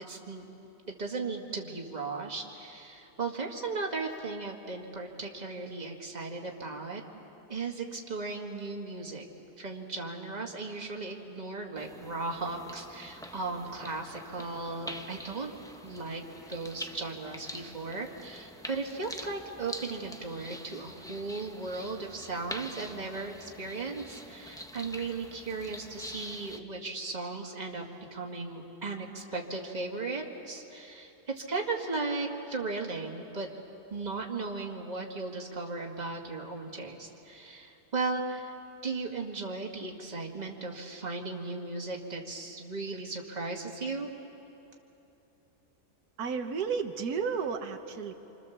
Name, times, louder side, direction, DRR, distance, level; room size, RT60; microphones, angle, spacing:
voice 1, 0.1-0.5 0.9-7.0 7.5-9.2 9.6-15.5 15.8-16.2 16.5-27.9 28.1-33.5 33.9-38.5 38.8-44.1, right 3 dB, 30° right, 1 dB, 2.0 m, -36 dB
sound 1, 11.8-26.6, equal, 5° left, 0.7 m, -45 dB
voice 2, 46.2-48.1, right 6 dB, 90° right, 6 dB, 1.6 m, -32 dB
27.0 x 26.0 x 7.2 m, 3.0 s
omnidirectional pair, 1.6 m